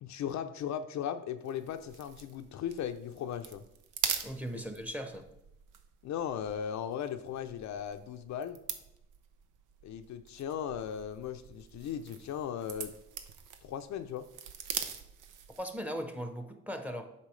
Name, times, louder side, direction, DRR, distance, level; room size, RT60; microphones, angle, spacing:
voice 1, 0.0-3.6 6.0-8.6 9.8-12.9 13.6-14.3, left 9 dB, 65° left, 8 dB, 0.5 m, -37 dB
sound 1, 1.4-15.8, right 8 dB, 85° right, 0.8 m, -43 dB
voice 2, 4.2-5.3 15.6-17.1, equal, 5° right, 6 dB, 0.9 m, -38 dB
8.3 x 5.5 x 3.2 m, 0.86 s
cardioid pair, 90°, 30 cm